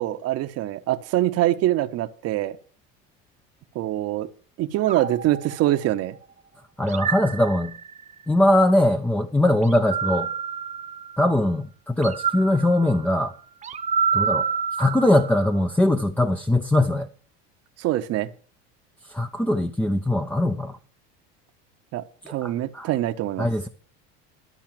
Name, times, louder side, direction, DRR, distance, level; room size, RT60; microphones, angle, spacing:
voice 1, 0.0-2.6 3.7-4.3 4.6-6.2 17.8-18.3 21.9-23.5, right 14 dB, 50° right, 1.0 m, -24 dB
sound 1, 4.9-6.2 6.9-8.1 9.6-11.4 12.0-15.5, right 6 dB, 20° right, 1.1 m, -29 dB
voice 2, 6.8-7.7 8.3-10.3 11.2-13.3 14.1-14.5 14.8-17.1 19.0-20.8 22.2-22.9 23.4-23.7, left 1 dB, 5° left, 0.6 m, -21 dB
12.5 x 5.7 x 7.5 m
supercardioid pair, 120°, 31 cm